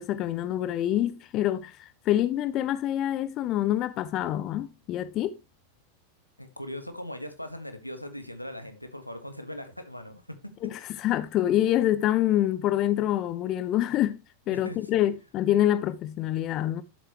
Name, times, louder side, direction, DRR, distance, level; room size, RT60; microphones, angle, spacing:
voice 1, 0.0-5.4 10.6-14.2 14.5-16.8, left 12 dB, 35° left, 0.5 m, -26 dB
voice 2, 6.4-10.5 13.9-14.0 14.5-15.0, left 1 dB, 90° left, 1.4 m, -40 dB
11.0 x 7.9 x 3.0 m
figure-of-eight pair, 90°, 0 cm